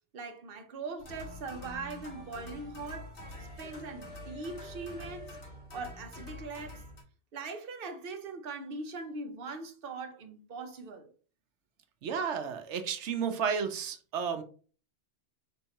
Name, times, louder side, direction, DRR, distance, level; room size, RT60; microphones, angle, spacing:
voice 1, 0.1-3.1 3.6-5.4 5.7-6.8 7.3-11.1, right 3 dB, 55° right, 0.9 m, -41 dB
sound 1, 1.0-7.0, left 1 dB, 55° left, 1.6 m, -46 dB
voice 2, 12.0-14.4, right 6 dB, 85° right, 1.0 m, -32 dB
4.5 x 3.5 x 2.9 m
omnidirectional pair, 1.2 m